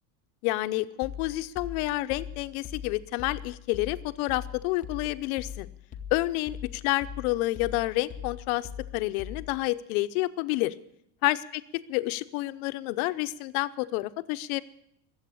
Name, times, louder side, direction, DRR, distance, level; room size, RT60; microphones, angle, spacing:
voice 1, 0.4-5.7 6.1-10.7 11.2-11.4 11.9-14.6, left 18 dB, 60° left, 12 dB, 0.8 m, -29 dB
sound 1, 1.0-9.7, left 9 dB, 15° left, 0.8 m, -42 dB
21.0 x 8.0 x 8.6 m, 0.75 s
cardioid pair, 170°, 48 cm